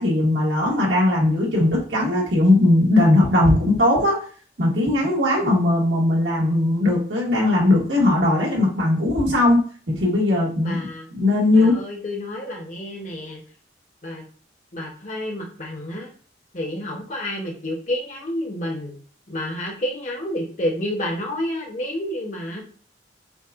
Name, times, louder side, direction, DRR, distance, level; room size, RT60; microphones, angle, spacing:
voice 1, 0.0-4.2 4.6-10.8 11.1-11.8, left 1 dB, 75° right, -2 dB, 1.6 m, -19 dB
voice 2, 10.6-11.1 11.5-13.4 14.0-14.2 14.7-16.1 16.5-18.9 19.3-22.6, left 1 dB, 40° left, 0 dB, 1.0 m, -29 dB
7.0 x 2.4 x 2.5 m, 0.42 s
head